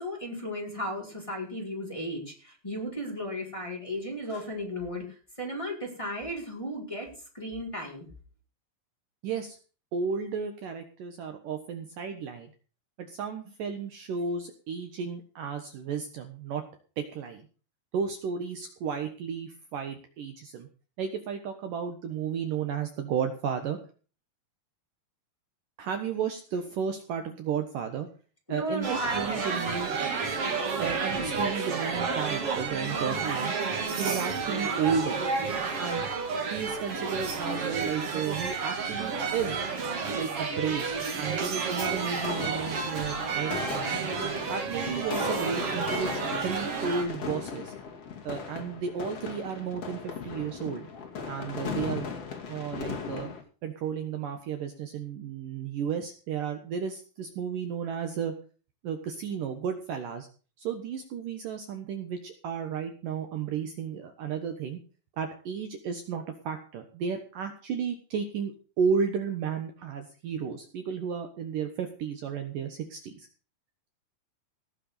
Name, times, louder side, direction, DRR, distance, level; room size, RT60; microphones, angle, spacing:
voice 1, 0.0-7.1 7.3-8.1 28.5-29.7, equal, 5° left, -1 dB, 4.7 m, -35 dB
voice 2, 9.2-9.6 9.9-12.5 13.0-16.6 17.0-17.5 17.9-20.7 21.0-23.8 25.8-28.1 28.5-29.9 30.8-33.6 34.0-35.2 35.8-36.0 36.5-39.6 40.1-44.0 44.5-47.7 48.2-50.9 51.2-52.1 52.5-53.3 53.6-58.4 58.8-60.3 60.6-64.8 65.2-73.3, right 6 dB, 65° right, 6 dB, 2.6 m, -33 dB
sound 1, 28.8-47.0, right 5 dB, 40° right, 2.7 m, -31 dB
sound 2, 41.8-53.4, left 6 dB, 40° left, 3.3 m, -38 dB
18.5 x 6.7 x 6.7 m, 0.38 s
omnidirectional pair, 4.6 m